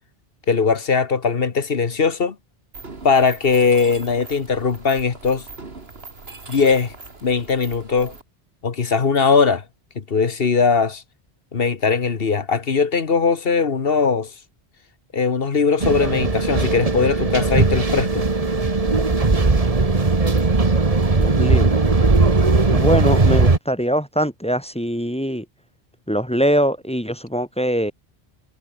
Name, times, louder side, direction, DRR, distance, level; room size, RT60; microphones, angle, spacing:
voice 1, 0.5-2.3 3.0-5.4 6.5-6.9 7.2-8.1 8.6-9.6 10.0-11.0 11.5-14.3 15.1-18.2, left 5 dB, 65° left, 1.6 m, -19 dB
Mechanisms, 2.7-8.2, right 3 dB, 75° right, 3.0 m, -40 dB
sound 1, 15.8-23.6, right 3 dB, 35° right, 1.6 m, -18 dB
voice 2, 21.1-21.8 22.7-25.4 26.1-27.9, equal, 5° left, 1.5 m, -22 dB
omnidirectional pair, 1.0 m